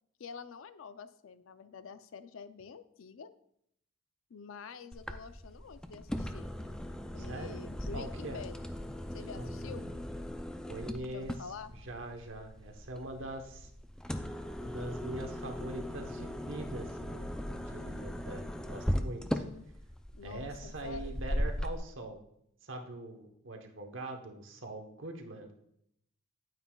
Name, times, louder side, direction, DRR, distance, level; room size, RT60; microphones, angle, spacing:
voice 1, 0.2-3.3 4.3-6.5 7.1-8.6 9.1-9.9 11.1-11.7 19.4-19.7 20.1-21.1, left 5 dB, 75° left, 12 dB, 0.5 m, -47 dB
sound 1, 4.9-21.8, equal, 5° left, 0.3 m, -38 dB
voice 2, 7.2-7.6 7.9-8.4 9.4-10.0 10.7-11.4 11.7-13.7 14.6-19.4 20.2-22.2 22.6-25.5, right 1 dB, 70° right, 3 dB, 1.1 m, -43 dB
9.3 x 9.1 x 2.3 m, 0.73 s
head